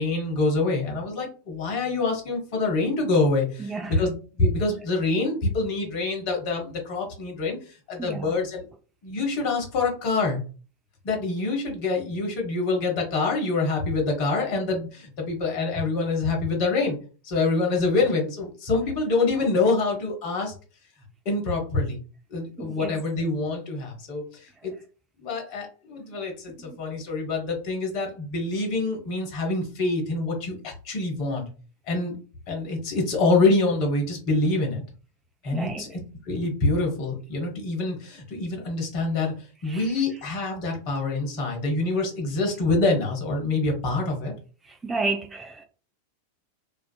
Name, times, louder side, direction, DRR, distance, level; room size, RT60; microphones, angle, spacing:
voice 1, 0.0-8.6 9.0-10.4 11.0-17.0 17.2-20.5 21.2-22.0 22.3-24.7 25.2-31.5 31.9-32.1 32.5-34.8 35.4-35.9 36.2-39.3 39.6-44.3, left 3 dB, 45° left, 0.9 m, -26 dB
voice 2, 3.6-4.0 8.0-8.3 22.6-23.0 26.5-26.8 35.5-35.9 39.7-39.9 44.6-45.6, right 3 dB, 15° right, 0.3 m, -32 dB
2.5 x 2.3 x 2.2 m
figure-of-eight pair, 90°, 0 cm